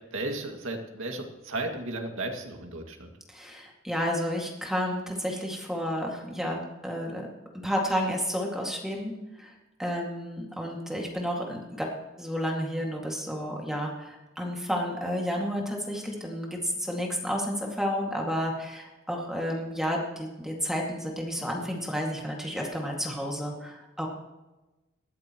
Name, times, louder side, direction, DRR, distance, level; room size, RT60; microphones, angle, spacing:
voice 1, 0.1-3.1, right 2 dB, 70° right, 3 dB, 2.2 m, -34 dB
voice 2, 3.3-7.3 7.6-9.1 9.4-11.9 12.2-24.1, equal, ahead, -1 dB, 2.1 m, -31 dB
19.0 x 13.5 x 3.1 m, 1.1 s
head